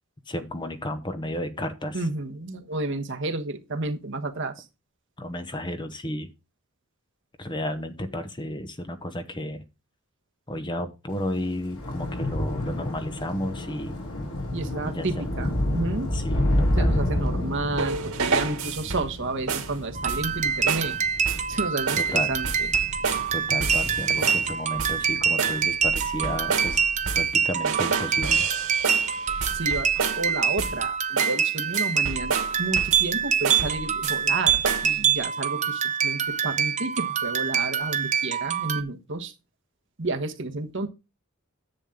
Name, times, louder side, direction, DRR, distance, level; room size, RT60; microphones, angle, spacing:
voice 1, 0.3-2.0 5.2-6.3 7.4-9.6 10.5-14.0 14.8-15.3 16.1-16.9 22.0-22.3 23.3-26.8 27.1-28.5, left 1 dB, 20° left, 0.9 m, -32 dB
voice 2, 1.9-4.7 14.5-16.1 16.8-21.0 21.5-22.7 29.5-39.3 40.0-40.9, right 2 dB, 60° right, 1.2 m, -31 dB
Thunder / Rain, 11.2-27.8 28.1-28.6 28.8-29.0, left 1 dB, 85° left, 3.9 m, -30 dB
sound 1, 17.8-19.2 19.5-19.8 20.1-20.4 20.7-20.9 21.3-21.5 21.9-22.1 22.4-23.3 23.6-24.5 24.8-25.1 25.4-27.4 27.6-30.3 30.6-30.9 31.2-31.4 31.7-33.1 33.4-34.2 34.5-34.9, right 5 dB, 85° right, 1.9 m, -30 dB
sound 2, 19.9-38.8, right 7 dB, 35° right, 0.7 m, -25 dB
10.5 x 7.3 x 3.7 m
head